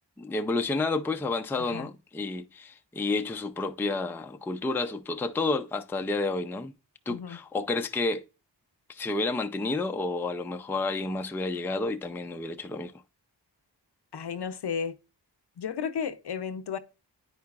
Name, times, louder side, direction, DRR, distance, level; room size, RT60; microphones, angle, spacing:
voice 1, 0.2-6.7 7.1-8.2 8.9-12.9, left 3 dB, 5° left, 0.3 m, -30 dB
voice 2, 1.6-1.9 7.1-7.4 14.1-15.0 15.6-16.8, left 7 dB, 65° left, 0.6 m, -33 dB
9.4 x 4.7 x 2.3 m
wide cardioid pair, 55°, 43 cm